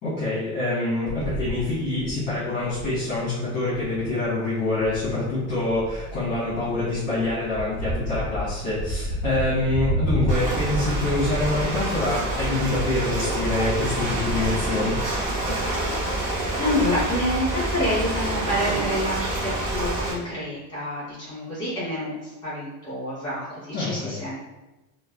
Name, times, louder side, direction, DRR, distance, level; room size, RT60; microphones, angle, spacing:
voice 1, 0.0-15.0 23.7-24.1, left 2 dB, 25° left, -11 dB, 0.9 m, -26 dB
sound 1, 1.1-11.7, right 1 dB, 90° right, 1.2 m, -31 dB
Ocean, 10.3-20.1, right 1 dB, 25° right, 1.4 m, -27 dB
voice 2, 16.5-24.4, left 1 dB, 10° left, -9 dB, 1.3 m, -28 dB
3.1 x 2.2 x 2.3 m, 1.1 s
cardioid pair, 180°, 44 cm